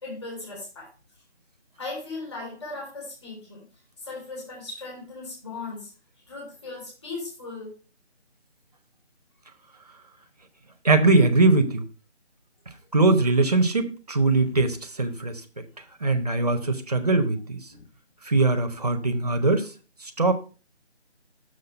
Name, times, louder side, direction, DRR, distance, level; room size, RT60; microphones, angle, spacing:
voice 1, 0.0-0.9 1.8-3.7 4.0-5.9 6.3-7.7 17.7-17.8, left 3 dB, 25° left, -4 dB, 3.5 m, -37 dB
voice 2, 10.8-11.9 12.9-15.6 16.0-17.6 18.2-19.7 20.0-20.3, right 3 dB, 35° right, 9 dB, 0.8 m, -21 dB
6.6 x 5.5 x 4.3 m, 0.36 s
figure-of-eight pair, 165°, 34 cm